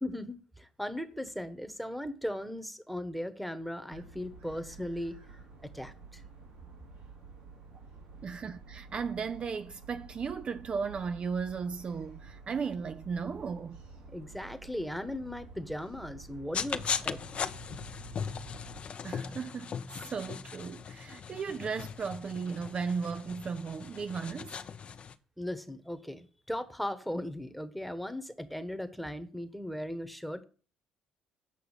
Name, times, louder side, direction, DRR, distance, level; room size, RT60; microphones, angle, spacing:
voice 1, 0.0-5.1 5.6-6.2 14.1-17.2 25.4-30.4, left 1 dB, ahead, 1.2 m, -38 dB
sound 1, 3.9-18.8, right 4 dB, 85° right, 4.2 m, -50 dB
voice 2, 8.2-13.8 19.0-24.6, right 5 dB, 45° right, 0.5 m, -36 dB
sound 2, 16.5-25.1, left 6 dB, 50° left, 0.7 m, -38 dB
8.3 x 5.6 x 7.2 m
supercardioid pair, 65°, 3 cm